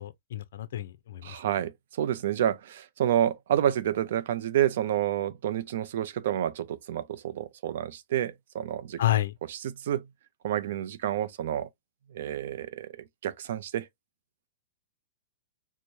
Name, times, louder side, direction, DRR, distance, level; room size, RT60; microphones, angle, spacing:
voice 1, 0.0-1.4 9.0-9.3, left 13 dB, 70° left, 0.4 m, -29 dB
voice 2, 1.2-9.0 9.5-10.1 10.4-11.7 12.1-12.9 13.2-13.9, right 11 dB, 65° right, 0.5 m, -29 dB
4.6 x 2.1 x 2.6 m
hypercardioid pair, 145°, 0 cm